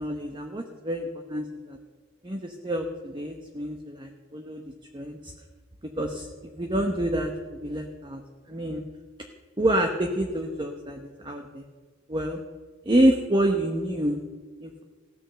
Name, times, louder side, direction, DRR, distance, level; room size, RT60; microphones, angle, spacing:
voice 1, 0.0-1.8 2.2-4.6 4.9-5.3 6.0-6.3 6.6-8.2 8.5-8.8 9.6-11.6 12.1-12.4 12.8-14.2 14.6-14.8, right 1 dB, 25° right, 3 dB, 1.0 m, -27 dB
16.0 x 9.7 x 6.8 m, 1.5 s
head